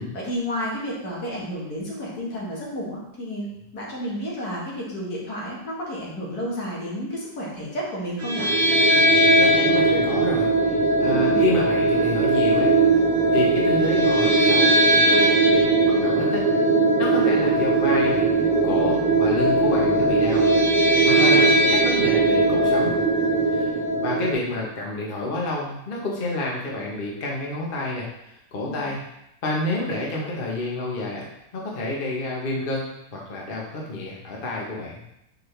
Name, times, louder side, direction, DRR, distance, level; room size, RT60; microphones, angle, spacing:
voice 1, 0.0-8.5 11.1-11.4 17.2-17.4 28.8-28.9, equal, 85° left, -4 dB, 2.1 m, -31 dB
sound 1, 8.2-24.3, right 2 dB, 65° right, 1.3 m, -19 dB
voice 2, 9.4-12.7 13.3-16.5 17.0-18.3 18.6-20.5 21.0-22.9 23.5-23.7 24.0-29.0 29.4-31.3 31.5-35.0, left 2 dB, 40° left, -3 dB, 1.2 m, -29 dB
6.0 x 4.7 x 3.3 m, 0.81 s
omnidirectional pair, 1.6 m